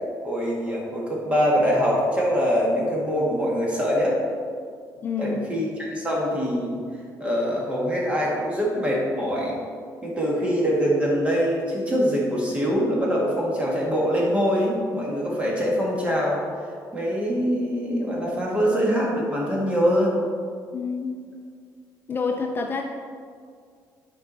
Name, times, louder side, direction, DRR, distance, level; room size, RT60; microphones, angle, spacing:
voice 1, 0.2-4.2 5.2-6.8 7.2-9.6 10.0-16.4 16.9-20.2, equal, 15° right, -4 dB, 1.7 m, -23 dB
voice 2, 5.0-5.4 20.7-21.2 22.1-22.8, left 5 dB, 30° left, 2 dB, 0.4 m, -27 dB
9.9 x 4.6 x 4.0 m, 2.1 s
cardioid pair, 145°, 7 cm